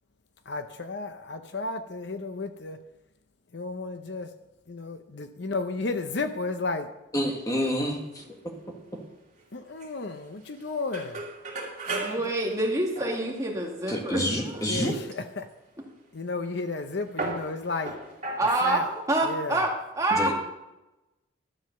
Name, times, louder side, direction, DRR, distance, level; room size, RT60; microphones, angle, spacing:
voice 1, 0.5-2.8 3.5-4.3 4.7-6.9 9.5-11.2 11.9-12.3 14.7-15.5 16.1-18.0 18.6-18.9 19.2-19.6, left 3 dB, 55° left, 8 dB, 0.7 m, -33 dB
voice 2, 7.1-8.2 13.9-14.9 20.1-20.3, equal, 15° left, 1 dB, 1.8 m, -28 dB
sound 1, 7.6-8.3 8.5-9.0 9.4-9.5 9.8-9.9 10.6-10.7 10.9-14.0 14.5-15.0 16.3-16.4 17.1-19.2, right 2 dB, 35° right, 2.7 m, -37 dB
voice 3, 12.0-14.8 18.4-19.7 19.9-20.3, right 2 dB, 15° right, -1 dB, 2.1 m, -27 dB
12.5 x 7.2 x 6.7 m, 0.97 s
head